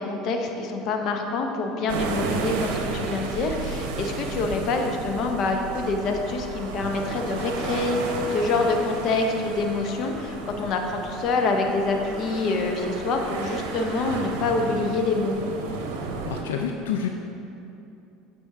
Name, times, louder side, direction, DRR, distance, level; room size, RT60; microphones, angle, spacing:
voice 1, 0.0-15.4, left 3 dB, 55° left, 3 dB, 0.8 m, -26 dB
sound 1, 1.9-16.4, right 4 dB, 75° right, 0.7 m, -33 dB
voice 2, 16.3-17.1, left 7 dB, 90° left, 3 dB, 0.3 m, -28 dB
8.5 x 4.4 x 3.5 m, 2.9 s
hypercardioid pair, 90°, 0 cm